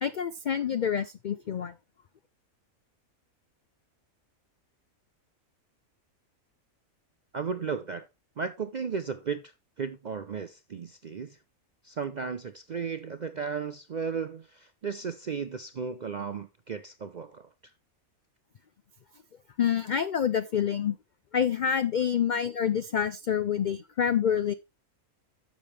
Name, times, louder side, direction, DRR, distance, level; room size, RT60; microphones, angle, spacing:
voice 1, 0.0-1.7 19.6-21.0 21.3-24.5, left 8 dB, 85° left, 0.4 m, -27 dB
voice 2, 7.3-8.1 8.4-11.4 11.8-17.5, right 6 dB, 65° right, 0.4 m, -35 dB
10.5 x 7.2 x 3.3 m
omnidirectional pair, 1.5 m